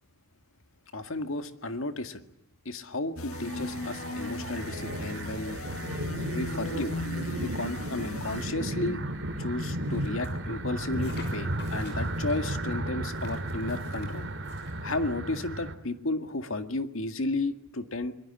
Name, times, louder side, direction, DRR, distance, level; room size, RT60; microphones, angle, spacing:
voice 1, 0.9-2.2 2.7-5.6 6.3-6.9 7.4-9.0 9.4-14.3 14.8-18.1, left 2 dB, 70° left, 8 dB, 2.0 m, -33 dB
sound 1, 3.2-8.5, left 2 dB, 90° left, 1.7 m, -37 dB
sound 2, 3.3-15.7, right 1 dB, 55° right, 2.8 m, -34 dB
sound 3, 9.8-10.4 10.9-12.4 13.0-15.0, left 3 dB, 50° left, 6.3 m, -50 dB
24.0 x 22.0 x 9.9 m, 0.78 s
head